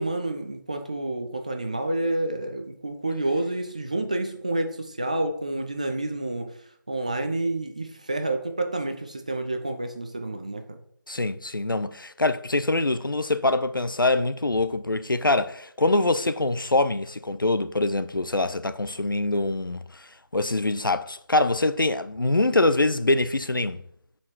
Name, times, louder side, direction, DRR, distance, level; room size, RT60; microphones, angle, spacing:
voice 1, 0.0-6.5 6.9-10.8, right 2 dB, 20° right, 0.4 m, -29 dB
voice 2, 11.1-23.8, left 2 dB, 80° left, 0.6 m, -24 dB
7.3 x 4.4 x 4.5 m
figure-of-eight pair, 165°, 11 cm